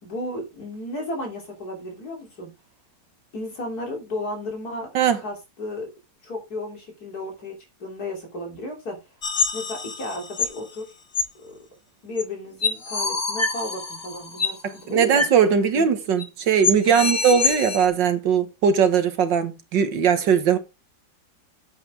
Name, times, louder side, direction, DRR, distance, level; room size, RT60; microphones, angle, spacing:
voice 1, 0.0-2.5 3.3-4.9 5.2-5.9 6.2-9.0 9.5-10.9 11.4-11.6 12.0-15.2 15.7-15.9 16.9-17.2, left 1 dB, 60° left, 3.6 m, -33 dB
sound 1, 9.2-10.6 11.1-11.2 12.2-12.3 12.6-14.6 15.2-15.4 15.6-15.7 16.2-16.3 16.6-17.9, left 4 dB, 35° left, 1.6 m, -26 dB
voice 2, 14.6-20.6, right 7 dB, 90° right, 2.1 m, -20 dB
9.3 x 8.4 x 3.5 m
omnidirectional pair, 1.9 m